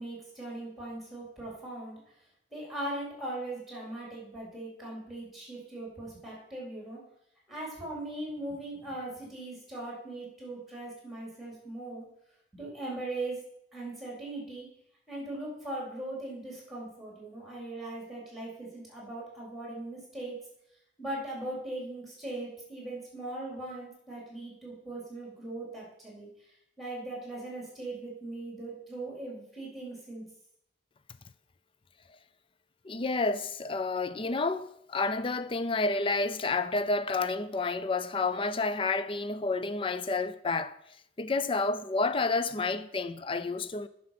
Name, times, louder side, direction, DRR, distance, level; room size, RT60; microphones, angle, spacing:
voice 1, 0.0-2.0 2.5-7.0 7.5-12.1 12.5-14.7 15.1-20.4 21.0-26.3 26.8-30.2, right 2 dB, ahead, 4.1 m, -39 dB
voice 2, 32.8-40.8 41.2-43.9, left 3 dB, 30° left, 0.5 m, -30 dB
9.7 x 6.3 x 5.9 m
head